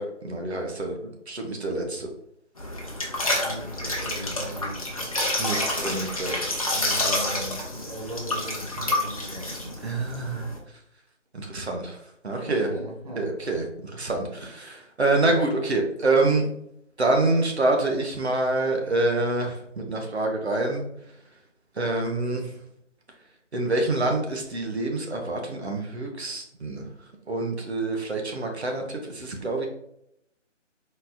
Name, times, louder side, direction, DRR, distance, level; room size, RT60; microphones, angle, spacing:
voice 1, 0.0-2.1 5.4-6.5 9.8-10.5 11.3-12.0 12.2-12.7 13.2-13.6 13.9-16.5 17.0-20.8 21.8-22.5 23.5-26.8 27.3-29.7, right 2 dB, 60° right, 2 dB, 1.1 m, -26 dB
sound 1, 2.6-10.6, left 1 dB, 30° left, 0.7 m, -29 dB
voice 2, 3.4-5.2 6.7-10.3 12.4-13.3, right 1 dB, 30° right, -4 dB, 0.8 m, -38 dB
4.2 x 4.0 x 2.6 m, 0.75 s
figure-of-eight pair, 160°, 37 cm